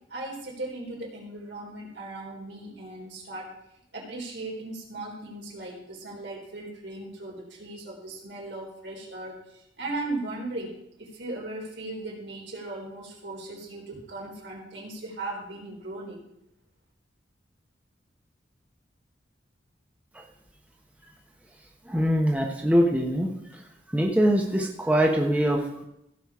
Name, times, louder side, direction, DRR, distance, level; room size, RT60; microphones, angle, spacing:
voice 1, 0.1-3.5 3.9-16.2, right 2 dB, 70° right, -2 dB, 3.8 m, -37 dB
voice 2, 21.9-23.3 23.9-25.8, equal, 10° right, 0 dB, 1.1 m, -23 dB
16.0 x 6.6 x 4.9 m, 0.79 s
head